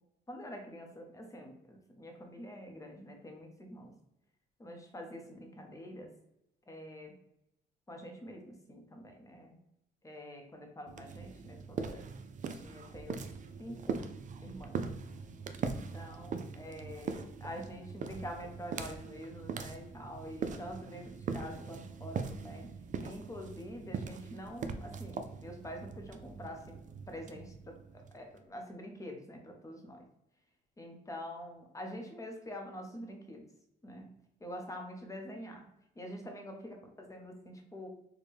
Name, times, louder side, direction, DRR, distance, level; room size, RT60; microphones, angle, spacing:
voice 1, 0.3-3.9 4.6-6.1 6.7-7.1 7.9-9.6 10.0-12.1 12.5-13.2 13.6-14.0 14.4-14.8 15.6-22.7 23.0-26.8 27.1-30.1 30.8-33.4 33.8-34.1 34.4-35.7 36.0-37.9, equal, 15° left, 3 dB, 0.8 m, -46 dB
sound 1, 10.9-28.4, right 5 dB, 40° right, 0.4 m, -41 dB
4.3 x 2.2 x 3.3 m, 0.85 s
cardioid pair, 90°, 20 cm